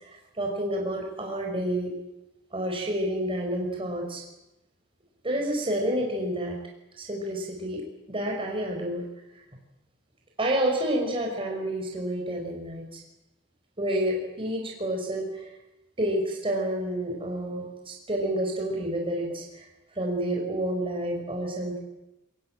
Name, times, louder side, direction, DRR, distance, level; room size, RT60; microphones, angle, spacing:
voice 1, 0.4-1.9 2.5-4.2 5.2-6.6 7.0-7.8 8.1-9.0 10.4-13.0 13.8-15.5 16.0-19.6 20.0-21.8, right 1 dB, 25° right, 0 dB, 5.1 m, -29 dB
23.0 x 20.5 x 9.0 m, 0.96 s
head